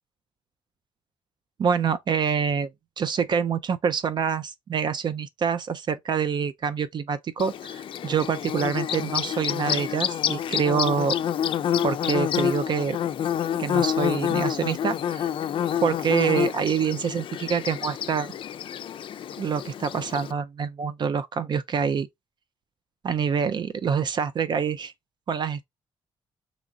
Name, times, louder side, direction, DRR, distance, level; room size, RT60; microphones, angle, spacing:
voice 1, 1.6-2.7 3.0-11.2 11.8-13.0 13.6-15.3 15.8-18.3 19.4-22.1 23.0-24.9 25.3-25.6, right 6 dB, 50° right, 0.4 m, -26 dB
Bird / Buzz, 7.4-20.3, left 9 dB, 60° left, 0.4 m, -28 dB
3.1 x 2.5 x 3.8 m
cardioid pair, 80°, 10 cm